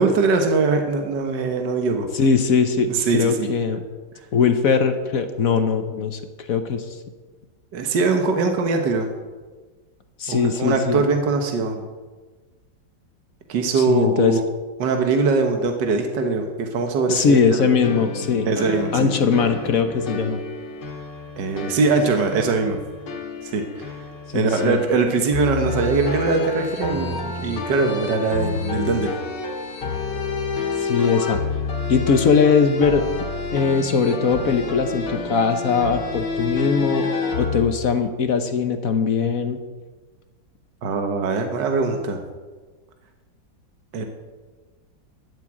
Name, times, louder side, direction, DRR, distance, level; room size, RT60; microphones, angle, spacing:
voice 1, 0.0-2.1 2.9-3.5 7.7-9.1 10.3-11.8 13.5-14.4 14.8-17.7 18.5-19.1 21.4-22.8 23.4-24.0 24.3-29.1 40.8-42.2 43.9-44.0, right 4 dB, 70° right, 4 dB, 1.9 m, -22 dB
voice 2, 2.1-3.8 4.3-6.2 6.5-6.8 10.2-11.0 13.7-14.4 17.1-18.5 18.9-20.4 24.3-24.8 30.8-31.4 31.9-33.0 33.5-37.1 37.4-39.6, left 5 dB, 55° left, 8 dB, 1.2 m, -20 dB
sound 1, 17.8-37.7, left 4 dB, 70° left, 2.3 m, -29 dB
12.5 x 7.5 x 8.7 m, 1.3 s
omnidirectional pair, 2.0 m